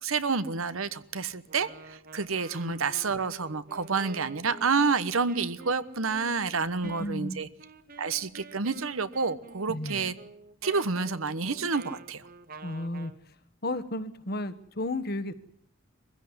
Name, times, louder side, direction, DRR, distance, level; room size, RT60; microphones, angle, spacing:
voice 1, 0.0-7.5 8.0-10.1 10.6-12.2, right 4 dB, 85° right, 14 dB, 1.1 m, -29 dB
Wind instrument woodwind instrument, 1.4-13.2, right 3 dB, 45° right, 1.0 m, -48 dB
voice 2, 6.8-7.4 9.7-10.0 12.6-13.1 13.6-15.3, left 1 dB, 50° left, 12 dB, 1.3 m, -33 dB
23.5 x 15.5 x 9.6 m, 0.65 s
head